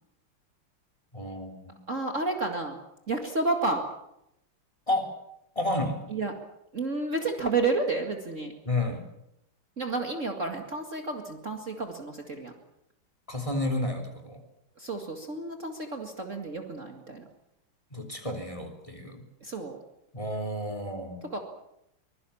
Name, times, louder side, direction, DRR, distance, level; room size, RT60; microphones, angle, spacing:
voice 1, 1.1-1.7 4.9-5.2 5.6-6.0 8.6-9.0 13.3-14.4 17.9-19.2 20.1-21.2, left 1 dB, 15° left, 5 dB, 3.5 m, -31 dB
voice 2, 1.9-2.8 3.1-3.8 6.1-6.3 6.7-8.5 9.8-12.5 14.8-17.3 19.4-19.8 21.3-21.4, right 3 dB, 35° right, 3 dB, 2.3 m, -31 dB
24.5 x 22.0 x 7.2 m, 0.82 s
omnidirectional pair, 2.3 m